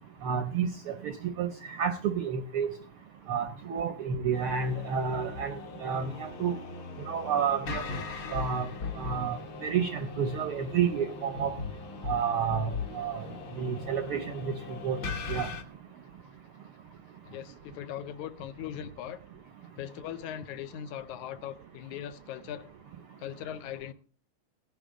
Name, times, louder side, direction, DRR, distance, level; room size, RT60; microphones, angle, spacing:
voice 1, 0.2-2.7 3.3-5.5 5.8-6.6 7.1-7.8 8.3-8.7 9.0-11.5 12.1-13.2 13.6-15.0 15.3-15.5, right 7 dB, 70° right, 1.3 m, -30 dB
sound 1, 4.3-15.6, left 4 dB, 50° left, 1.7 m, -39 dB
voice 2, 17.3-19.2 19.6-22.7 23.2-23.9, left 10 dB, 85° left, 2.2 m, -40 dB
16.5 x 10.5 x 3.7 m
omnidirectional pair, 3.3 m